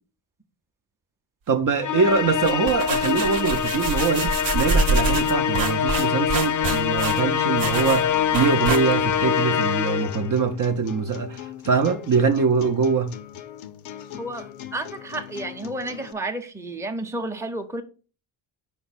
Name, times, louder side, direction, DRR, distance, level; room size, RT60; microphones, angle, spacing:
voice 1, 1.5-13.1, right 5 dB, 40° right, 0.7 m, -23 dB
Musical instrument, 1.8-10.3, left 8 dB, 40° left, 0.6 m, -24 dB
sound 1, 2.3-9.2, right 4 dB, 65° right, 0.9 m, -27 dB
sound 2, 8.1-16.1, left 11 dB, 75° left, 0.7 m, -40 dB
voice 2, 14.7-17.8, right 2 dB, 5° right, 0.7 m, -31 dB
5.1 x 4.4 x 4.1 m
cardioid pair, 70°, 49 cm